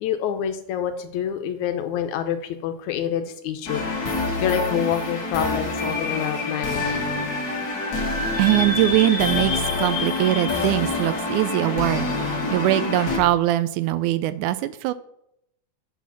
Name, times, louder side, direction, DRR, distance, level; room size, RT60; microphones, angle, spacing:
voice 1, 0.0-4.1 4.4-7.0, left 9 dB, 75° left, 8 dB, 2.0 m, -27 dB
sound 1, 3.7-13.2, left 3 dB, 40° left, 1.5 m, -26 dB
voice 2, 8.4-14.9, right 15 dB, 85° right, 14 dB, 2.0 m, -22 dB
8.2 x 4.9 x 5.7 m, 0.77 s
omnidirectional pair, 3.5 m